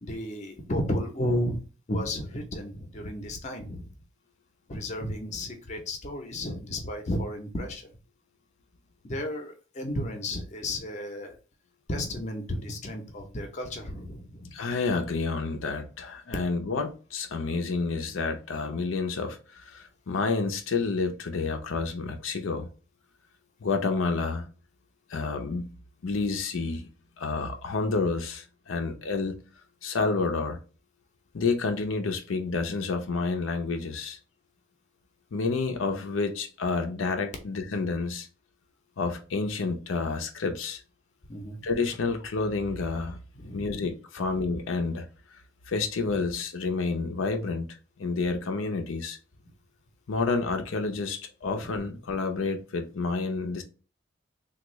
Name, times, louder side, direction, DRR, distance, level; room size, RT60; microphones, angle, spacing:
voice 1, 0.0-1.6 1.9-3.9 4.7-7.9 9.0-11.4 11.9-14.6 41.3-41.6 43.3-43.9 51.5-51.7, left 1 dB, 35° left, 0.6 m, -33 dB
voice 2, 14.5-22.7 23.6-24.5 25.1-25.7 26.0-26.9 27.2-29.4 29.8-30.6 31.3-34.2 35.3-38.3 39.0-40.8 41.6-43.2 43.5-45.1 45.7-49.2 50.1-53.6, left 4 dB, 85° left, 0.5 m, -29 dB
3.4 x 2.3 x 3.0 m
head